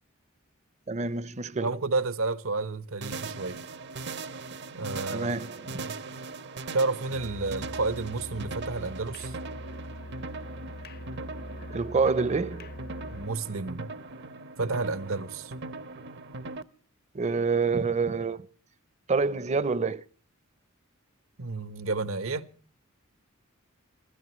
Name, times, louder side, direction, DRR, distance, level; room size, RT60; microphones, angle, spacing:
voice 1, 0.9-1.7 5.1-5.8 11.7-12.7 17.1-18.5 19.1-20.0, right 4 dB, 35° right, 0.6 m, -27 dB
voice 2, 1.6-3.6 4.7-5.4 5.7-6.0 6.7-9.3 13.0-13.9 14.6-15.5 21.4-22.5, right 3 dB, 75° right, 1.1 m, -31 dB
sound 1, 3.0-16.6, right 3 dB, 55° right, 0.8 m, -40 dB
Musical instrument, 7.1-13.4, left 1 dB, 50° left, 0.7 m, -43 dB
26.5 x 16.5 x 3.1 m
head